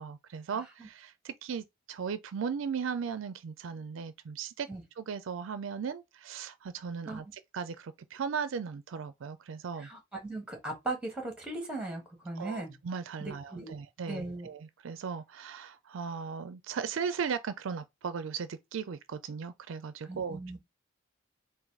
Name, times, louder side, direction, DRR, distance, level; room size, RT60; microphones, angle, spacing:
voice 1, 0.0-4.7 5.0-9.9 12.4-20.6, right 6 dB, 65° right, 0.4 m, -37 dB
voice 2, 9.8-12.8 13.2-13.8 14.1-14.5 20.0-20.6, right 2 dB, 5° right, 1.4 m, -38 dB
4.0 x 2.5 x 4.6 m
head